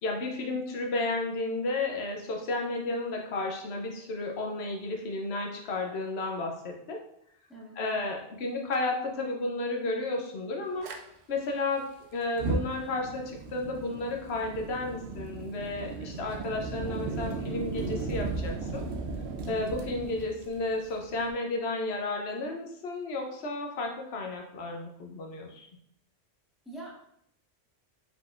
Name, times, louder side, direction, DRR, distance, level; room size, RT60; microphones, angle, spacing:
voice 1, 0.0-7.0 7.8-10.9 11.3-11.9 12.1-18.8 19.5-25.7, left 2 dB, 70° left, 1 dB, 1.0 m, -32 dB
voice 2, 7.5-7.8 26.6-26.9, right 2 dB, ahead, -6 dB, 1.3 m, -44 dB
Fire, 10.8-11.0 12.2-21.3, right 3 dB, 75° right, 0.9 m, -36 dB
4.9 x 3.8 x 2.5 m, 0.73 s
omnidirectional pair, 1.1 m